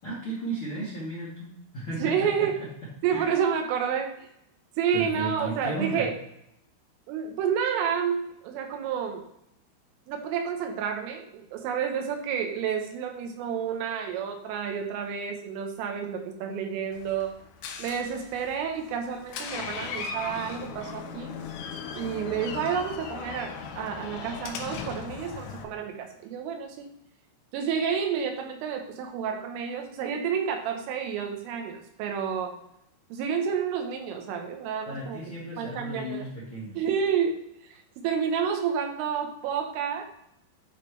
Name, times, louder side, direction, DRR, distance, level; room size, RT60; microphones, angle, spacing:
voice 1, 0.0-2.5 3.1-3.3 4.9-6.0 34.8-36.8, right 1 dB, 55° left, -7 dB, 1.5 m, -35 dB
voice 2, 2.0-2.7 3.0-4.3 4.8-6.1 7.1-9.2 10.1-17.3 17.8-21.4 22.0-26.9 27.5-32.6 33.1-35.2 35.6-36.3 36.8-40.0, right 7 dB, 90° right, 4 dB, 3.6 m, -30 dB
Door, 16.9-25.6, left 6 dB, 80° left, 3.0 m, -38 dB
11.5 x 4.4 x 3.2 m, 0.78 s
omnidirectional pair, 5.6 m